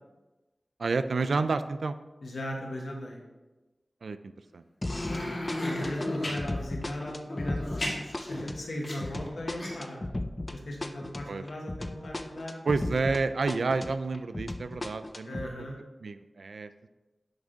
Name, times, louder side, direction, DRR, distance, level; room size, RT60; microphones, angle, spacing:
voice 1, 0.8-2.0 4.0-4.6 11.3-11.4 12.7-15.7 16.0-16.7, right 3 dB, 85° right, 12 dB, 0.3 m, -30 dB
voice 2, 2.2-3.2 4.8-10.0 10.5-12.6 15.2-15.8, left 1 dB, 75° left, 0 dB, 1.4 m, -38 dB
sound 1, 4.8-5.2 5.5-13.2 13.5-15.5, left 1 dB, 25° left, 0.4 m, -36 dB
sound 2, 4.9-6.4 7.2-9.3 9.6-9.7, left 1 dB, 55° left, 2.1 m, -33 dB
10.5 x 3.6 x 3.9 m, 1.1 s
wide cardioid pair, 90°, 0 cm